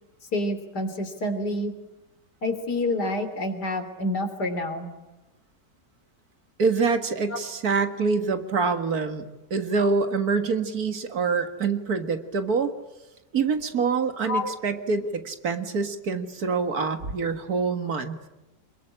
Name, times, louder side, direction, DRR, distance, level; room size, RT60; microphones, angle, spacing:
voice 1, 0.3-1.7 2.4-4.9 7.3-7.4 14.3-14.5, left 1 dB, 75° left, 8 dB, 3.9 m, -28 dB
voice 2, 6.6-9.2 9.5-12.7 13.3-18.2, right 4 dB, 60° right, 8 dB, 2.2 m, -25 dB
26.0 x 22.0 x 10.0 m, 1.0 s
omnidirectional pair, 1.8 m